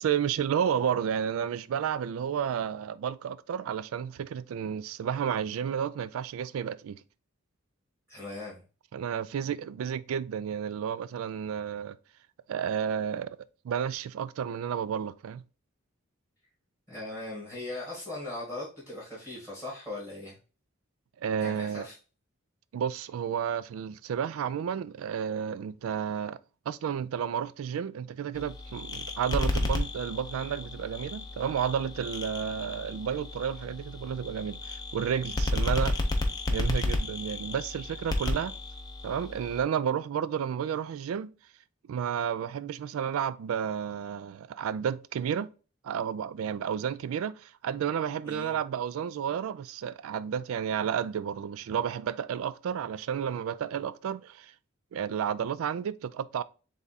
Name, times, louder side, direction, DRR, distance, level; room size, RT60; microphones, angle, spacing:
voice 1, 0.0-7.0 8.9-12.0 12.5-13.4 13.6-15.4 21.2-21.9 22.7-26.4 26.7-36.0 36.5-38.5 39.0-41.3 41.9-45.5 45.8-54.5 54.9-56.4, right 8 dB, 80° right, 0.3 m, -31 dB
voice 2, 8.1-8.5 16.9-20.3 21.4-21.9 48.2-48.6, left 2 dB, 10° right, 1.7 m, -39 dB
sound 1, 28.3-39.6, left 2 dB, 20° left, 0.5 m, -32 dB
3.6 x 3.4 x 4.0 m
head